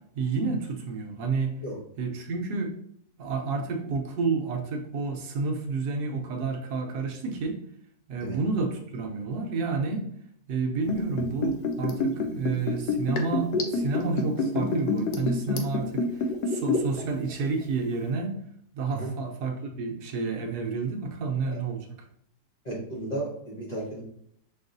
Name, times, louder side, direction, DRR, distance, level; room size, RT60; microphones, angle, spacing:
voice 1, 0.1-1.5 2.0-2.7 3.2-7.6 8.1-10.1 10.5-18.3 18.7-21.9, right 4 dB, 75° right, 3 dB, 1.2 m, -30 dB
Liquid, 10.8-17.0 17.3-17.4, left 3 dB, 85° left, 1.2 m, -27 dB
voice 2, 22.6-24.0, right 2 dB, 35° left, -6 dB, 0.8 m, -34 dB
6.0 x 2.4 x 2.6 m, 0.68 s
omnidirectional pair, 1.8 m